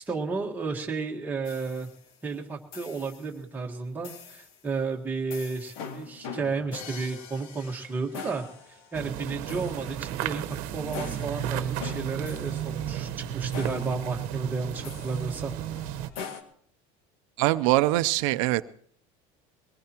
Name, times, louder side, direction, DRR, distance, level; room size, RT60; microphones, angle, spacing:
voice 1, 0.0-1.9 2.2-10.4 10.7-15.5, right 4 dB, 10° right, 0 dB, 1.5 m, -32 dB
sound 1, 1.4-2.2 2.7-3.4 4.0-4.6 5.3-16.4, left 6 dB, 80° left, 2.1 m, -43 dB
sound 2, 8.9-16.1, right 10 dB, 60° right, 1.1 m, -33 dB
voice 2, 17.4-18.7, right 18 dB, 85° right, 12 dB, 0.6 m, -23 dB
22.5 x 18.5 x 3.0 m, 0.62 s
cardioid pair, 175°, 16 cm